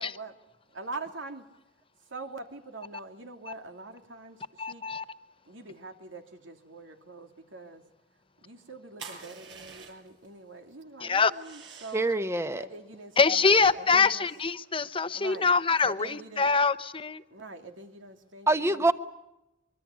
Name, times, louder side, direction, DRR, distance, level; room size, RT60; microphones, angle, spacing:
voice 1, 0.0-0.3 0.7-1.4 2.1-4.8 5.4-7.8 8.4-12.1 12.6-14.3 15.1-15.5 15.8-16.5 17.3-18.9, right 3 dB, 90° right, 5 dB, 2.9 m, -44 dB
voice 2, 4.6-5.0 11.0-11.3 13.2-17.2, left 4 dB, 30° left, 12 dB, 0.9 m, -24 dB
sound 1, 9.0-10.3 11.3-12.2 13.1-14.8, right 5 dB, 70° right, 5.2 m, -48 dB
voice 3, 11.9-12.7 18.5-18.9, right 2 dB, 15° right, 9 dB, 1.2 m, -25 dB
24.5 x 23.5 x 8.5 m, 0.93 s
head